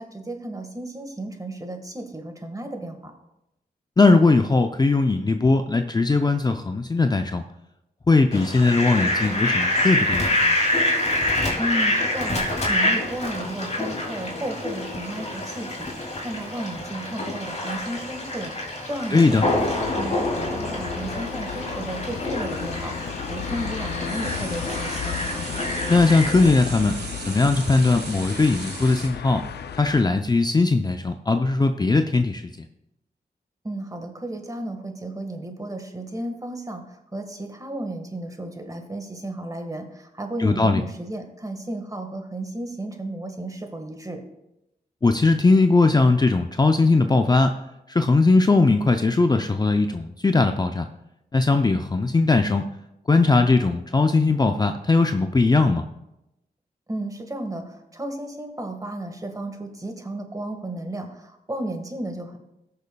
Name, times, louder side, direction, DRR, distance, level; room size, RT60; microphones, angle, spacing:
voice 1, 0.0-3.1 11.6-15.9 16.2-25.2 33.6-36.8 37.1-44.2 56.9-62.4, right 1 dB, 20° right, 5 dB, 1.6 m, -33 dB
voice 2, 4.0-7.4 8.1-10.5 19.1-19.5 25.9-27.0 27.3-29.4 29.8-32.4 40.4-40.8 45.0-47.5 47.9-50.9 51.3-52.6 53.1-55.9, left 3 dB, 25° left, 7 dB, 0.5 m, -19 dB
Fowl, 8.3-26.5, left 1 dB, 40° left, 2.6 m, -26 dB
sound 1, 13.0-20.4 21.5-21.6 22.4-29.1, right 4 dB, 85° right, 1.4 m, -41 dB
sound 2, 19.3-30.0, left 8 dB, 85° left, 0.4 m, -35 dB
17.5 x 6.6 x 2.3 m, 0.89 s
cardioid pair, 60°, 17 cm